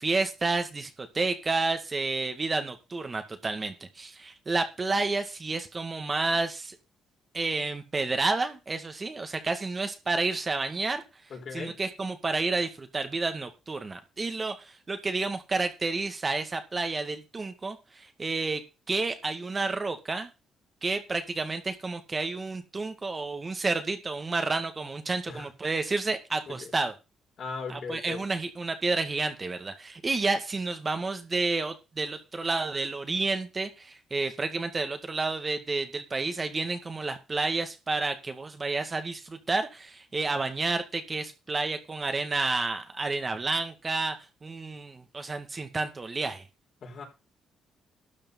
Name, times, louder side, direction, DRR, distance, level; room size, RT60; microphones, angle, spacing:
voice 1, 0.0-6.8 7.3-11.0 11.5-18.6 18.9-20.3 20.8-26.9 27.7-44.2 44.4-46.4, right 3 dB, 30° right, 7 dB, 2.0 m, -30 dB
voice 2, 11.3-11.8 25.3-25.5 26.5-26.7 27.4-28.2 46.8-47.1, left 5 dB, 55° left, 2 dB, 4.6 m, -38 dB
12.5 x 6.9 x 5.4 m, 0.29 s
cardioid pair, 90°, 0 cm